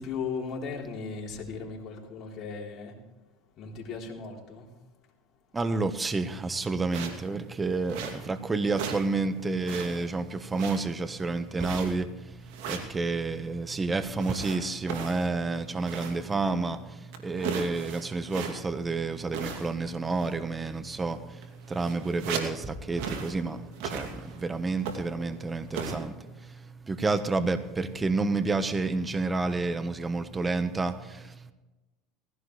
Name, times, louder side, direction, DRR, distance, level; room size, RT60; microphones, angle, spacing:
voice 1, 0.0-3.0 3.6-4.7, left 5 dB, 50° left, 3.7 m, -37 dB
voice 2, 5.5-31.5, right 3 dB, 20° right, 1.2 m, -30 dB
sound 1, 6.9-7.3 7.9-8.4 8.7-9.1 9.4-10.1 10.5-11.1 11.6-12.1 12.5-13.0 14.2-16.3 16.6-16.7 17.1-18.8 19.3-19.9 20.1-20.4 21.1-21.2 21.4-22.6 23.0-23.4 23.7-24.4 24.8-25.2 25.7-26.0, right 6 dB, 70° right, 2.5 m, -37 dB
19.5 x 16.0 x 3.3 m
hypercardioid pair, 95°, 0 cm